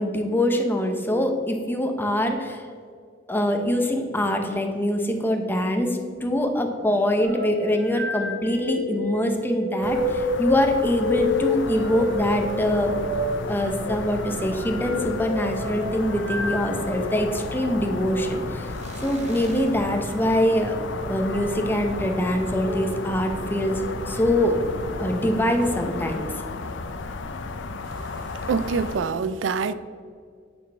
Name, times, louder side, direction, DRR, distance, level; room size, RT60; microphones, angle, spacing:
voice 1, 0.0-2.7 3.3-13.0 13.5-18.7 19.0-20.8 21.0-24.6 25.0-26.2, left 1 dB, 10° left, 4 dB, 0.8 m, -24 dB
sound 1, 7.2-17.2 17.9-18.2 20.2-20.5 21.3-21.8 22.4-22.7 23.5-24.0 24.5-25.5, left 2 dB, 60° right, 1.8 m, -30 dB
sound 2, 9.8-29.0, left 3 dB, 80° left, 0.5 m, -34 dB
sound 3, 11.2-25.8, right 1 dB, 35° right, 1.3 m, -39 dB
voice 2, 28.5-29.7, right 5 dB, 90° right, 14 dB, 0.4 m, -25 dB
9.1 x 6.1 x 3.5 m, 2.2 s
head